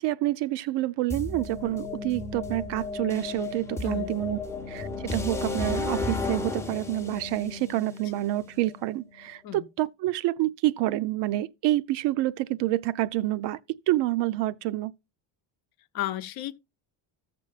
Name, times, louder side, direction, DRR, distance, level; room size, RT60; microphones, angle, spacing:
voice 1, 0.0-4.4 4.7-13.6 13.9-14.9, right 16 dB, 60° right, 0.6 m, -28 dB
sound 1, 1.1-9.0, left 3 dB, 5° left, 0.7 m, -34 dB
voice 2, 3.8-4.2 9.4-9.7 15.9-16.5, left 14 dB, 50° left, 0.7 m, -33 dB
15.0 x 6.9 x 2.4 m
cardioid pair, 155°, 47 cm